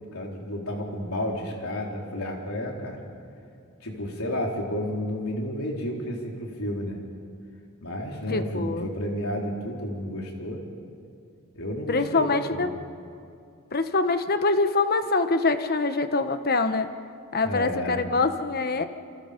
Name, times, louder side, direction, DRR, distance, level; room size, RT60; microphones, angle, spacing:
voice 1, 0.1-3.0 3.8-7.0 7.8-10.6 11.5-12.7 17.4-18.0, left 1 dB, 80° left, -1 dB, 4.2 m, -31 dB
voice 2, 8.3-8.9 11.9-12.7 13.7-16.9 17.3-18.9, left 3 dB, 45° left, 9 dB, 1.2 m, -24 dB
28.5 x 26.5 x 5.3 m, 2.4 s
head